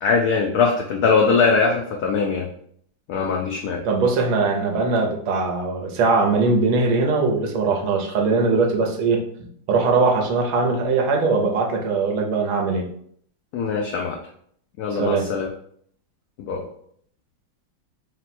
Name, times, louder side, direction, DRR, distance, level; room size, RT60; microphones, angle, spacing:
voice 1, 0.0-2.5 3.1-3.8 13.5-14.2 14.8-15.5 16.4-16.6, left 5 dB, 90° left, 1 dB, 0.8 m, -21 dB
voice 2, 3.8-9.2 9.7-12.9 14.9-15.2, right 4 dB, 80° right, 1 dB, 1.6 m, -21 dB
4.3 x 2.2 x 4.1 m, 0.64 s
omnidirectional pair, 2.2 m